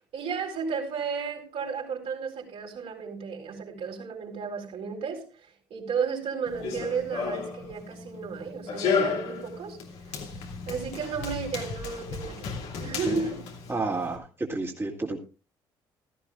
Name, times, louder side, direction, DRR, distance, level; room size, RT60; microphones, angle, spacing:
voice 1, 0.1-10.2 10.7-13.5, right 6 dB, 60° right, 4.4 m, -33 dB
Run, 6.4-14.2, left 5 dB, 70° left, 2.9 m, -33 dB
voice 2, 13.7-15.2, right 3 dB, 20° right, 2.5 m, -30 dB
16.5 x 14.0 x 2.5 m
hypercardioid pair, 55°, 12 cm